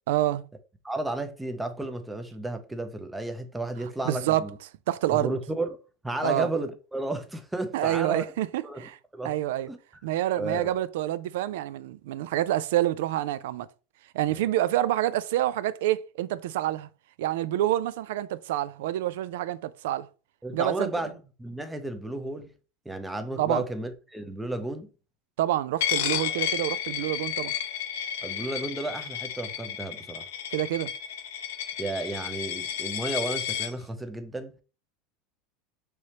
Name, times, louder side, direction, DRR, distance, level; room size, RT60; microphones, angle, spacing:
voice 1, 0.1-0.5 4.0-4.4 4.9-5.3 6.2-6.5 7.7-9.0 9.2-9.7 10.0-13.7 14.1-16.9 17.2-20.1 20.5-20.9 23.4-23.6 25.4-27.5 30.5-30.9, right 13 dB, 85° right, 0.3 m, -27 dB
voice 2, 0.8-4.6 5.1-5.7 6.0-8.2 8.6-9.3 9.7-9.8 10.4-10.7 14.3-14.4 20.4-21.1 21.4-22.5 22.9-24.9 28.2-30.3 31.8-34.5, right 2 dB, 5° right, 0.5 m, -33 dB
Coin (dropping), 25.8-33.7, left 10 dB, 85° left, 0.5 m, -32 dB
4.8 x 3.1 x 2.8 m
supercardioid pair, 160°, 0 cm